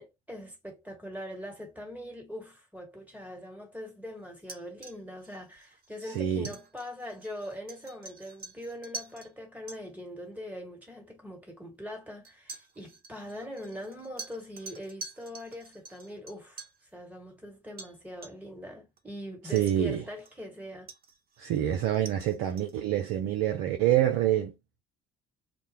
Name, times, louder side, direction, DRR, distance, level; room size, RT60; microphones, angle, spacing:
voice 1, 0.0-16.6 16.9-20.9, equal, 5° right, 1.7 m, -42 dB
sound 1, 4.4-9.3 9.7-9.8 10.8-10.9 12.2-16.8 17.8-18.0 18.2-18.6 19.0-19.1 19.6-20.5 20.9-22.8, right 3 dB, 30° right, 0.8 m, -47 dB
voice 2, 6.1-6.5 19.5-20.0 21.4-24.5, right 11 dB, 60° right, 0.6 m, -26 dB
2.4 x 2.2 x 2.9 m
hypercardioid pair, 55°, 30 cm